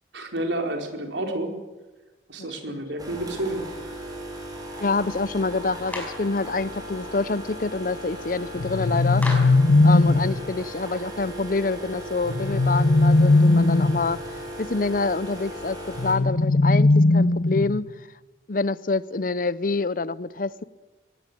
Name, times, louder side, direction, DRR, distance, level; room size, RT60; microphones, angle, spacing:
voice 1, 0.1-1.5 2.3-3.6, right 1 dB, 90° right, 4.5 m, -29 dB
voice 2, 2.4-2.8 4.8-9.2 9.8-14.3 14.6-17.9 18.5-20.6, left 3 dB, 50° left, 0.7 m, -27 dB
sound 1, 3.0-16.1, equal, 20° right, 6.6 m, -37 dB
Clapping, 5.9-6.3 9.2-9.6, left 1 dB, 10° left, 5.4 m, -32 dB
sound 2, 8.6-10.4 12.2-14.1 16.0-17.9, left 2 dB, 75° left, 1.3 m, -19 dB
22.0 x 18.0 x 9.4 m
head